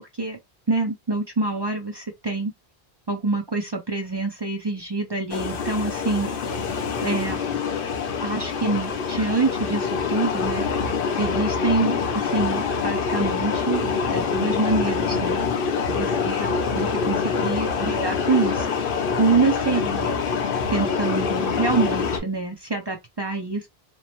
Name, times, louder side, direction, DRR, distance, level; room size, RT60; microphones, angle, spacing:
voice 1, 0.7-2.5 3.1-6.3 7.0-7.4 8.2-10.6 11.2-15.4 15.9-16.5 16.8-18.7 19.2-20.2 20.7-23.7, right 3 dB, 35° right, 0.5 m, -26 dB
sound 1, 5.3-22.2, left 5 dB, 60° left, 0.7 m, -25 dB
3.0 x 2.0 x 2.8 m
omnidirectional pair, 1.1 m